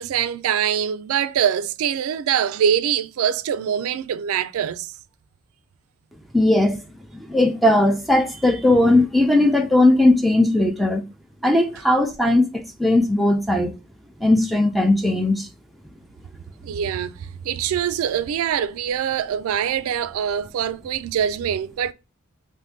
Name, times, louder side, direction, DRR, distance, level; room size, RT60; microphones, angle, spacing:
voice 1, 0.0-4.9 16.6-17.1 17.4-21.9, right 8 dB, 75° right, 0.3 m, -23 dB
voice 2, 6.3-6.8 7.1-11.0 11.4-13.7 14.2-15.5, left 1 dB, ahead, 0.4 m, -18 dB
2.6 x 2.5 x 3.4 m
head